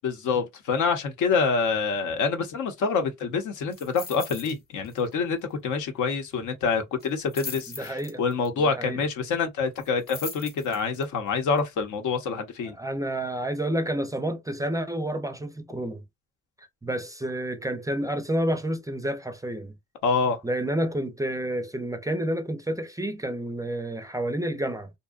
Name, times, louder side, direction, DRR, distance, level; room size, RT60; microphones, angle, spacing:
voice 1, 0.0-12.8 20.0-20.4, left 5 dB, 75° left, 0.8 m, -26 dB
sound 1, 3.7-4.6 4.8-5.1 5.4-5.5 7.0-8.5 9.7-11.0 11.6-11.7, left 4 dB, 30° left, 0.8 m, -40 dB
voice 2, 7.7-8.3 8.6-9.0 12.7-16.0 16.8-19.7 20.4-24.9, right 1 dB, 10° right, 0.4 m, -29 dB
2.6 x 2.2 x 2.3 m
cardioid pair, 90°, 30 cm